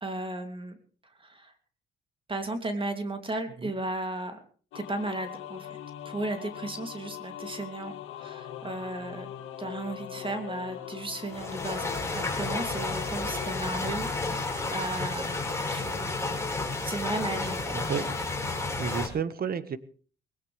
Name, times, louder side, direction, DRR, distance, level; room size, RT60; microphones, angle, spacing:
voice 1, 0.0-0.7 1.2-1.5 2.3-4.4 4.7-5.8 6.0-9.3 9.6-15.4 15.7-16.3 16.8-17.8, right 2 dB, 25° right, 6 dB, 2.9 m, -35 dB
sound 1, 4.7-13.8, left 11 dB, 90° left, 1.9 m, -41 dB
sound 2, 11.3-19.1, left 3 dB, 15° left, 5.1 m, -31 dB
voice 2, 17.7-18.2 18.8-19.8, right 7 dB, 50° right, 13 dB, 1.5 m, -31 dB
20.0 x 18.0 x 3.4 m, 0.42 s
cardioid pair, 90°, 20 cm